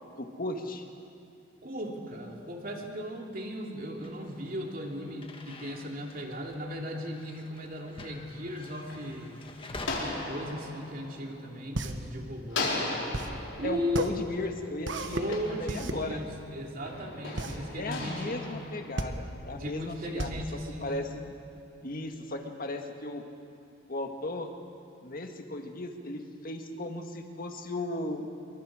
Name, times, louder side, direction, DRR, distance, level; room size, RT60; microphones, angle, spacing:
voice 1, 0.2-0.8 13.6-16.2 17.8-21.3 21.8-23.2 23.9-24.6 25.0-28.3, left 1 dB, 50° left, 4 dB, 1.8 m, -36 dB
voice 2, 1.6-9.4 9.9-12.8 13.6-14.2 15.1-18.4 19.5-21.0, left 1 dB, 50° right, 1 dB, 2.8 m, -37 dB
sound 1, 4.0-9.9, left 2 dB, 30° left, 1.6 m, -48 dB
sound 2, 8.3-12.0 12.5-16.3 16.9-19.5, left 2 dB, 90° left, 4.3 m, -38 dB
sound 3, 11.5-21.6, right 2 dB, 70° right, 1.3 m, -36 dB
27.5 x 23.5 x 5.0 m, 2.5 s
head